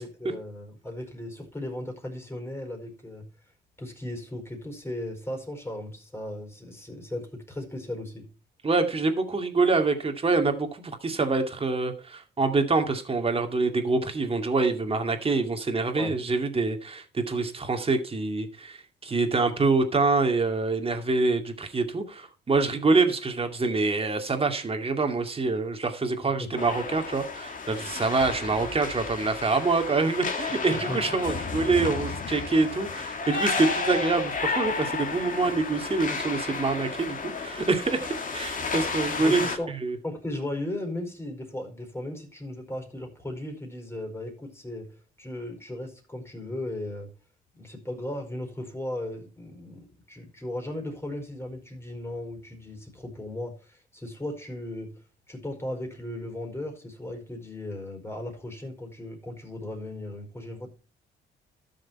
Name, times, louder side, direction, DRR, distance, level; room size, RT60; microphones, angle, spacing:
voice 1, 0.0-3.3 3.8-8.3 15.9-16.2 26.4-26.5 27.7-27.8 30.7-31.0 39.2-39.7 40.0-47.1 47.6-55.0 55.3-60.7, left 1 dB, 10° left, 4.7 m, -36 dB
voice 2, 8.6-40.0, right 3 dB, 30° right, 2.3 m, -26 dB
sound 1, 26.6-39.6, left 4 dB, 40° left, 2.2 m, -32 dB
13.0 x 6.6 x 4.4 m
cardioid pair, 90°, 20 cm